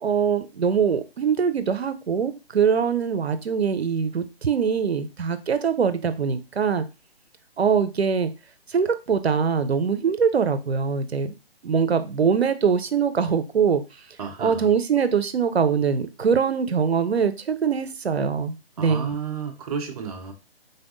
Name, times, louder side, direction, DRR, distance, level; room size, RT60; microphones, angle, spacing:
voice 1, 0.0-6.8 7.6-8.3 8.7-11.3 11.6-13.8 14.4-19.1, right 6 dB, 85° right, 11 dB, 0.7 m, -23 dB
voice 2, 14.2-14.7 18.8-20.3, right 6 dB, 35° right, 3 dB, 0.9 m, -32 dB
4.0 x 3.4 x 2.6 m, 0.28 s
figure-of-eight pair, 140°, 31 cm